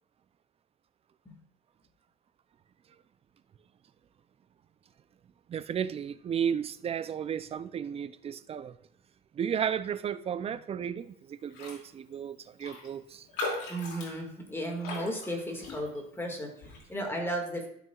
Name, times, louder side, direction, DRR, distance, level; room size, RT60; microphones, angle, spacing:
voice 1, 5.5-8.8 9.3-13.3, right 8 dB, 35° right, 0.4 m, -33 dB
Raindrop, 11.5-11.8 12.1-12.2 12.6-16.2 16.6-16.9, left 2 dB, 90° left, 2.5 m, -39 dB
voice 2, 13.7-17.7, right 1 dB, 15° left, 1.9 m, -35 dB
12.5 x 6.0 x 2.4 m
cardioid pair, 110°, 17 cm